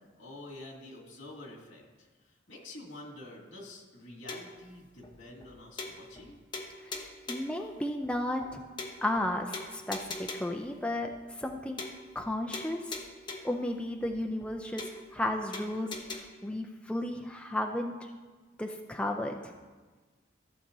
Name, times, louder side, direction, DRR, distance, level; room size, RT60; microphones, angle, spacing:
voice 1, 0.2-6.4, left 2 dB, 75° left, -2 dB, 2.3 m, -48 dB
sound 1, 4.3-4.6 5.0-5.1 5.4-5.5 5.8-6.3 6.5-7.6 8.0-8.1 8.4-8.5 8.8-9.3 9.5-10.6 11.0-11.1 11.4-11.5 11.8-12.3 12.5-13.6 14.0-14.1 14.4-14.5 14.8-15.3 15.5-16.2, left 3 dB, 25° left, 0.8 m, -41 dB
voice 2, 6.8-8.6 9.0-11.8 12.2-13.0 13.4-16.0 16.4-18.1 18.6-19.5, left 1 dB, 5° left, 2 dB, 0.4 m, -34 dB
15.0 x 7.3 x 2.7 m, 1.4 s
head